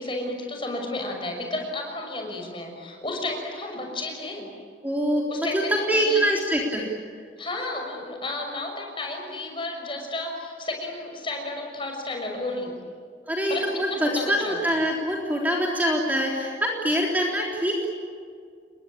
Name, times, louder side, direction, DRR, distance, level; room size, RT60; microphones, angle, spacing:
voice 1, 0.0-4.5 5.3-6.2 7.4-12.7 13.5-13.6 13.9-14.6, left 2 dB, 30° left, 2 dB, 6.2 m, -32 dB
voice 2, 4.8-6.9 13.3-17.9, equal, 10° right, -2 dB, 3.6 m, -24 dB
29.0 x 23.0 x 8.8 m, 2.2 s
head